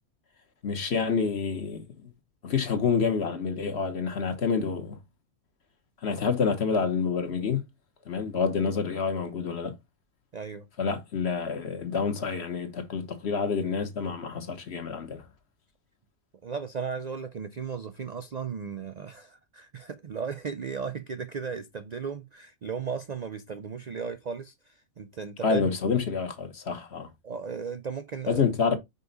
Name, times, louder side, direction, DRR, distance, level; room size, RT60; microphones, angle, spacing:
voice 1, 0.6-2.1 2.4-5.0 6.0-7.6 8.1-9.8 10.8-15.3 25.4-27.1 28.3-28.8, left 5 dB, 50° left, 1.1 m, -28 dB
voice 2, 10.3-10.9 16.4-26.0 27.2-28.4, right 6 dB, 80° right, 0.3 m, -36 dB
5.4 x 4.8 x 3.9 m
omnidirectional pair, 1.5 m